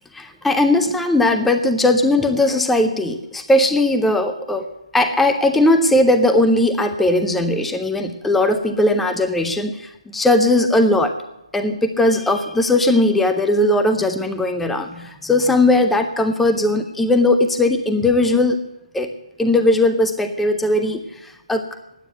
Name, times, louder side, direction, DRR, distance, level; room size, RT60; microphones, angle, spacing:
voice 1, 0.1-11.2 11.5-18.6 18.9-21.7, left 2 dB, 5° left, 6 dB, 0.5 m, -18 dB
9.5 x 9.2 x 9.0 m, 0.91 s
figure-of-eight pair, 145°, 3 cm